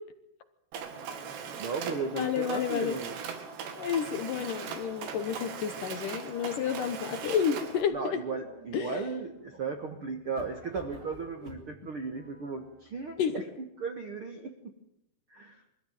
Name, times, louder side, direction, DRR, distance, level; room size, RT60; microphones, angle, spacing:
Mechanisms, 0.7-7.8, right 6 dB, 85° right, 4.4 m, -40 dB
voice 1, 1.4-3.1 7.9-13.4 13.8-14.5 15.3-15.6, right 4 dB, 60° right, 5 dB, 1.4 m, -36 dB
voice 2, 2.1-3.0 3.8-8.2 8.7-9.0 13.2-13.4, left 8 dB, 65° left, 9 dB, 2.2 m, -30 dB
sound 1, 8.4-13.2, equal, 30° right, 3.3 m, -51 dB
24.0 x 15.0 x 9.2 m, 0.83 s
omnidirectional pair, 4.9 m